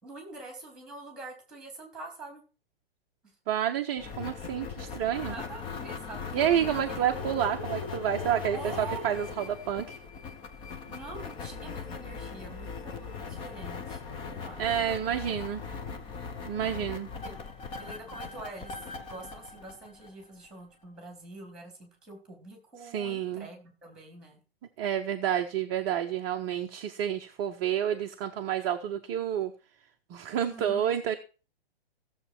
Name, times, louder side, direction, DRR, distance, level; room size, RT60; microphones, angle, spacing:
voice 1, 0.0-2.4 5.3-7.0 8.5-9.0 10.9-14.0 14.3-14.6 17.1-17.4 17.8-18.7 19.1-24.4 30.5-31.0, right 3 dB, ahead, 3 dB, 3.8 m, -45 dB
voice 2, 3.5-5.3 6.3-10.0 14.6-15.6 16.4-17.1 22.9-23.5 24.8-29.5 30.1-31.2, right 10 dB, 25° right, 4 dB, 0.8 m, -29 dB
sound 1, 4.0-20.5, left 5 dB, 15° left, 0.9 m, -39 dB
15.5 x 7.3 x 4.5 m, 0.34 s
figure-of-eight pair, 120°, 30 cm